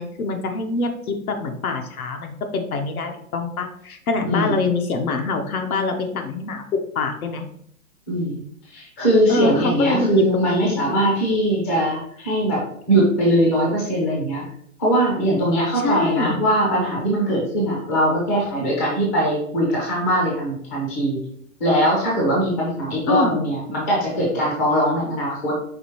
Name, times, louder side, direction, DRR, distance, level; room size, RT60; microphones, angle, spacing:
voice 1, 0.0-6.6 6.9-7.4 9.3-10.8 15.7-16.4 23.1-23.4, left 3 dB, 80° left, 5 dB, 1.0 m, -25 dB
voice 2, 8.1-8.4 8.7-12.6 12.9-14.4 14.8-21.2 21.6-25.5, right 1 dB, 10° left, -4 dB, 0.4 m, -21 dB
5.0 x 2.7 x 3.0 m, 0.67 s
hypercardioid pair, 150°, 42 cm